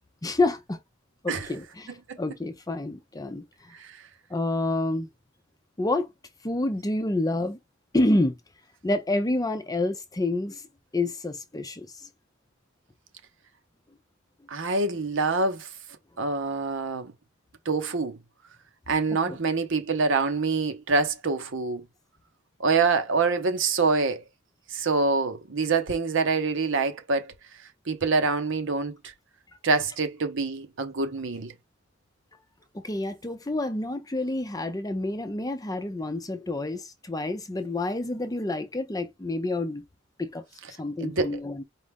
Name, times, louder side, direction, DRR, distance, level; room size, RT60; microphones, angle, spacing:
voice 1, 0.2-0.8 1.2-3.4 4.3-5.1 5.8-6.1 6.4-7.6 7.9-8.4 8.8-10.6 10.9-11.9 19.3-19.4 32.8-39.8 40.2-40.4 40.8-41.6, left 2 dB, 20° left, 0.6 m, -28 dB
voice 2, 14.5-15.7 16.2-17.1 17.7-18.2 18.9-21.8 22.6-24.2 24.7-27.3 27.9-29.0 29.6-31.5 41.0-41.4, right 4 dB, 65° right, 0.9 m, -25 dB
4.6 x 2.5 x 3.5 m
head